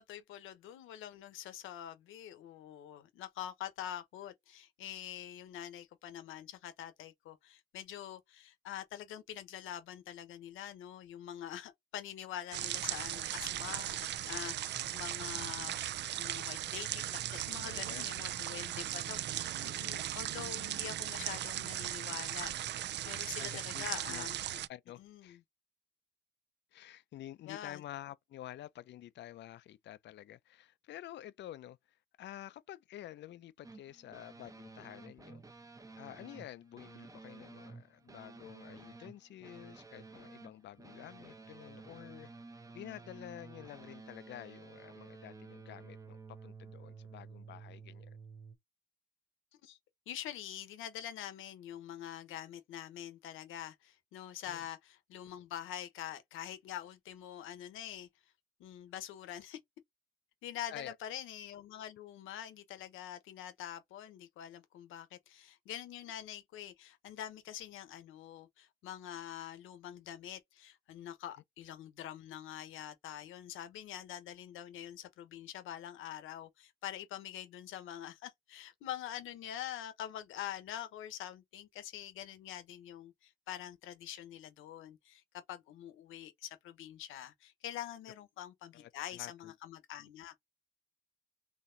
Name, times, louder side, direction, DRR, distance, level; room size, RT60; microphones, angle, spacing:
voice 1, 0.0-22.8 23.0-24.4 25.0-25.4 27.5-27.8 49.6-49.8 50.1-58.1 58.6-59.6 60.4-90.3, left 11 dB, 90° left, 1.0 m, -45 dB
sound 1, 12.5-24.7, right 12 dB, 60° right, 0.4 m, -38 dB
voice 2, 17.7-18.1 23.4-24.3 24.7-25.4 26.7-35.4 36.0-42.3 42.7-48.2 54.5-54.6 60.7-60.9 88.7-89.5 90.0-90.1, left 13 dB, 65° left, 0.5 m, -50 dB
sound 2, 33.6-48.6, right 4 dB, 15° right, 0.8 m, -52 dB
4.0 x 3.0 x 2.6 m
cardioid pair, 90°, 20 cm